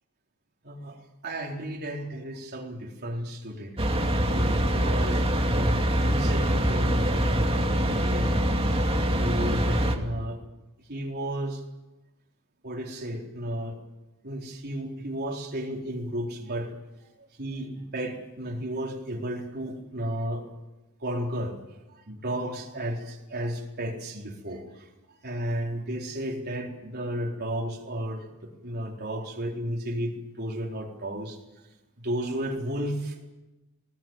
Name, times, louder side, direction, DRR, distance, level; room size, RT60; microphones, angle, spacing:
voice 1, 0.6-1.0 1.2-3.7 4.3-10.4 10.9-11.6 12.6-13.8 14.2-16.7 17.4-20.4 21.0-21.5 21.9-24.9 25.2-31.4 32.0-33.3, equal, 50° right, 0 dB, 4.1 m, -33 dB
sound 1, 3.8-9.9, equal, 25° right, 2.3 m, -24 dB
21.0 x 18.0 x 9.1 m, 1.0 s
head